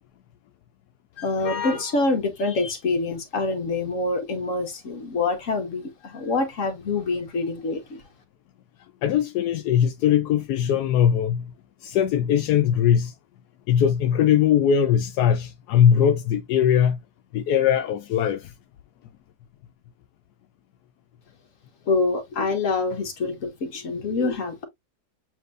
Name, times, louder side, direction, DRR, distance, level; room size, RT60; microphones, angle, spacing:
voice 1, 1.2-8.0 21.9-24.7, left 3 dB, 55° left, 1.6 m, -26 dB
voice 2, 9.0-11.5 11.8-13.1 13.7-17.0 17.3-18.5, left 9 dB, 80° left, 1.1 m, -20 dB
7.5 x 2.8 x 2.4 m
omnidirectional pair, 1.7 m